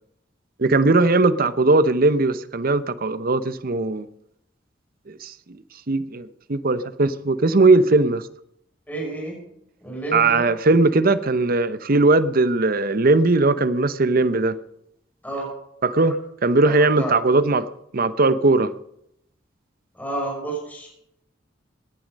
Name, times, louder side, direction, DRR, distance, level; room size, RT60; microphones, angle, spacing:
voice 1, 0.6-4.1 5.1-5.6 5.9-8.2 10.1-14.6 15.8-17.7 17.9-18.7, right 3 dB, 50° right, 13 dB, 0.8 m, -19 dB
voice 2, 8.9-9.4 9.8-10.5 15.2-15.5 16.6-17.1 20.0-20.9, right 2 dB, 10° left, -3 dB, 6.1 m, -30 dB
18.0 x 11.0 x 5.3 m, 0.76 s
head